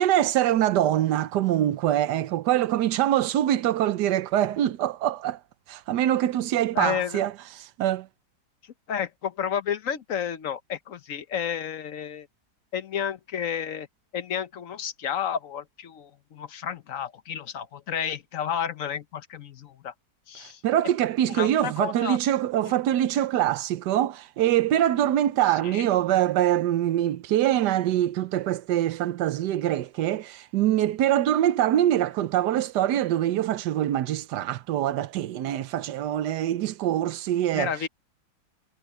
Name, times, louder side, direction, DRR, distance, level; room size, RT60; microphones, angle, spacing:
voice 1, 0.0-5.4 5.7-8.1 20.4-37.7, right 12 dB, 90° right, 1.3 m, -24 dB
voice 2, 6.7-7.2 8.9-12.3 12.7-13.9 14.1-19.9 20.3-20.6 21.3-22.2 22.6-22.7 25.6-25.9 37.5-37.9, left 8 dB, 60° left, 1.1 m, -31 dB
omnidirectional pair, 1.8 m